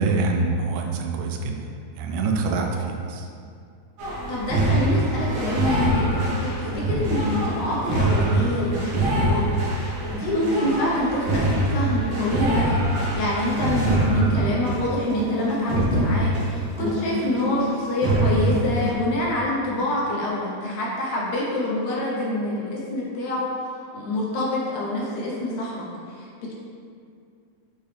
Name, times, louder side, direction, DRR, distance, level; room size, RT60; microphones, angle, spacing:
voice 1, 0.0-1.6 2.0-3.3, right 3 dB, 90° right, 2 dB, 2.2 m, -25 dB
sound 1, 4.0-17.7 18.0-18.9, right 1 dB, 60° right, 1.9 m, -24 dB
voice 2, 4.3-9.9 10.1-26.5, left 1 dB, 70° left, -4 dB, 2.3 m, -26 dB
6.8 x 4.5 x 3.4 m, 2.3 s
omnidirectional pair, 3.6 m